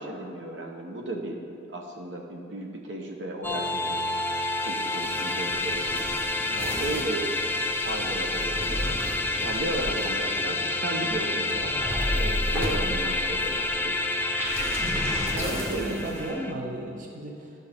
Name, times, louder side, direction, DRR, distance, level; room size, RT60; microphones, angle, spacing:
voice 1, 0.0-1.4 1.7-7.3 7.8-9.0 9.4-14.2 15.5-16.1, right 1 dB, 75° right, 1 dB, 1.0 m, -35 dB
sound 1, 3.4-16.5, left 2 dB, 10° left, 0.4 m, -29 dB
sound 2, 4.7-16.3, equal, 15° right, 1.1 m, -34 dB
voice 2, 15.3-17.5, right 1 dB, 45° right, -1 dB, 0.8 m, -34 dB
12.5 x 5.3 x 3.6 m, 2.6 s
head